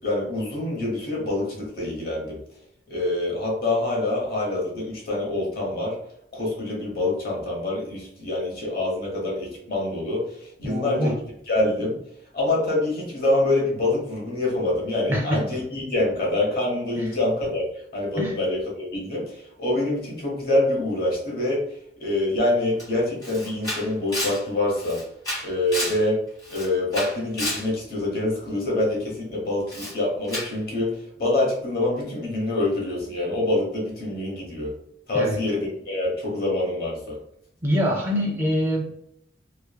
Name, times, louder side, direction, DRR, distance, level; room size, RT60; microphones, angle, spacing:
voice 1, 0.0-2.4 2.9-6.0 6.3-11.2 11.5-12.0 12.3-21.6 22.0-25.0 25.4-26.2 26.5-34.7 35.1-37.2, left 2 dB, 55° left, -3 dB, 1.0 m, -25 dB
voice 2, 10.6-11.1 15.1-15.4 18.2-18.3 35.1-35.4 37.6-38.8, equal, 15° right, -2 dB, 0.6 m, -24 dB
Camera, 22.8-22.9 23.2-26.0 26.4-27.7 29.7-30.0 30.3-30.6, left 1 dB, 20° left, 1.4 m, -31 dB
3.1 x 2.0 x 2.3 m, 0.72 s
head